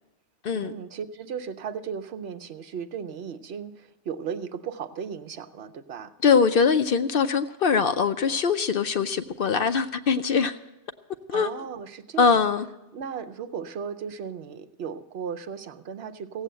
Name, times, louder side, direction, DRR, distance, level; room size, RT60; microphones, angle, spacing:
voice 1, 0.5-6.1 11.3-12.5 12.9-16.4, right 7 dB, 65° right, 0.9 m, -36 dB
voice 2, 6.2-10.6 11.3-11.5 12.2-12.7, left 5 dB, 60° left, 0.7 m, -22 dB
16.5 x 8.0 x 7.4 m
omnidirectional pair, 1.2 m